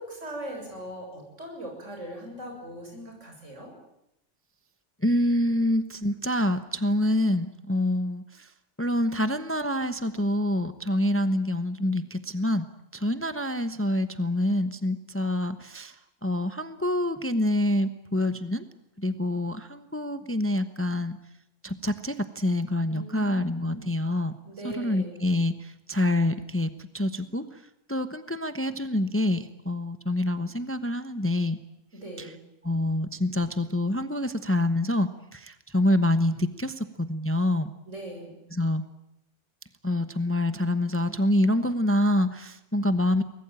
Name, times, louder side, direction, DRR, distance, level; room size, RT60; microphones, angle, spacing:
voice 1, 0.0-3.7 22.9-23.9 24.4-25.2 31.9-32.4 37.9-38.4, right 1 dB, 75° right, 1 dB, 7.7 m, -40 dB
voice 2, 5.0-8.5 8.8-12.6 12.9-15.9 16.2-18.6 19.0-21.2 21.6-24.3 24.6-26.7 26.9-27.4 27.9-31.6 32.2-32.3 32.6-37.7 38.5-38.8 39.8-43.2, left 1 dB, 10° left, 10 dB, 0.9 m, -26 dB
24.0 x 20.0 x 9.0 m, 0.84 s
omnidirectional pair, 1.3 m